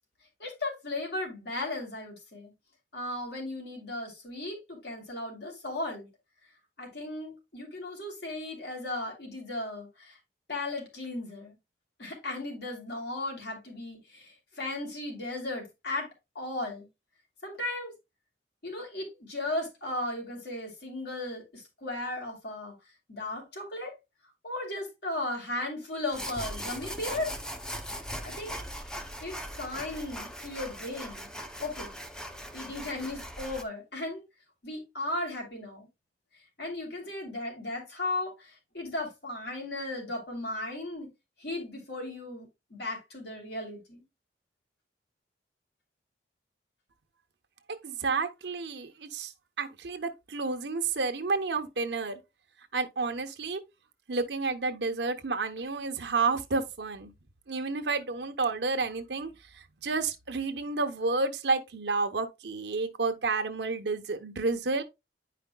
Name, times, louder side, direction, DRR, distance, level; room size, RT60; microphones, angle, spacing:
voice 1, 0.4-2.5 2.9-6.1 6.8-10.2 10.5-11.5 12.0-16.1 16.3-16.9 17.4-17.9 18.6-22.7 23.1-23.9 24.4-27.3 27.9-28.0 28.2-28.6 29.2-31.3 31.6-31.9 32.5-34.2 34.6-35.9 36.6-41.1 41.4-44.0, left 2 dB, 70° left, 2.9 m, -36 dB
sound 1, 26.1-33.6, equal, 5° left, 0.6 m, -39 dB
voice 2, 47.8-49.3 49.6-52.2 52.7-53.6 54.1-57.1 57.5-64.8, right 4 dB, 80° right, 0.8 m, -30 dB
9.9 x 5.0 x 2.2 m
head